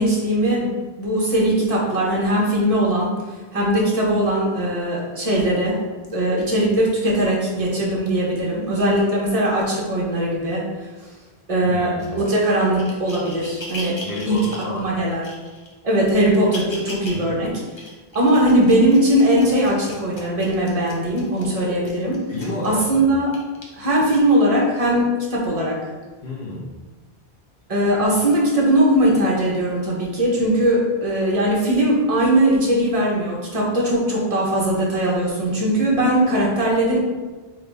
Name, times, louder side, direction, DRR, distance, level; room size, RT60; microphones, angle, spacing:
voice 1, 0.0-3.1 3.5-5.8 6.1-10.6 11.5-14.0 14.3-14.4 14.7-15.2 15.8-17.5 18.1-22.2 22.6-23.3 23.8-25.8 27.7-37.0, right 1 dB, 35° right, -4 dB, 1.0 m, -20 dB
voice 2, 11.7-12.2 14.0-14.9 17.1-17.2 22.3-23.0 26.2-26.6, left 1 dB, 60° left, -8 dB, 1.1 m, -30 dB
sound 1, 12.0-14.7 15.2-15.7 16.3-17.3 17.7-22.8 23.3-23.6 24.4-24.5, left 1 dB, 35° left, 0.6 m, -38 dB
3.7 x 2.9 x 3.3 m, 1.3 s
omnidirectional pair, 1.0 m